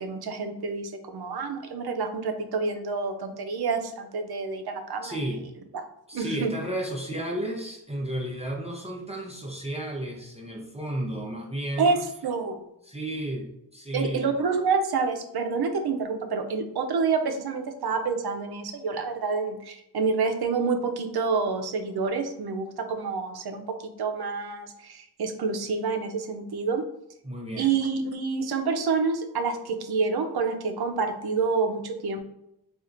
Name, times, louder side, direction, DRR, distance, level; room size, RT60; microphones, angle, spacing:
voice 1, 0.0-5.2 6.1-6.5 11.8-12.0 12.2-12.6 13.9-23.6 24.0-26.8 27.6-32.2, right 4 dB, 65° right, 6 dB, 0.6 m, -28 dB
voice 2, 5.0-5.4 6.1-12.0 12.8-13.5 13.7-14.3 27.2-27.8, right 1 dB, 15° right, -1 dB, 0.6 m, -33 dB
4.2 x 2.5 x 2.5 m, 0.81 s
wide cardioid pair, 70°, 42 cm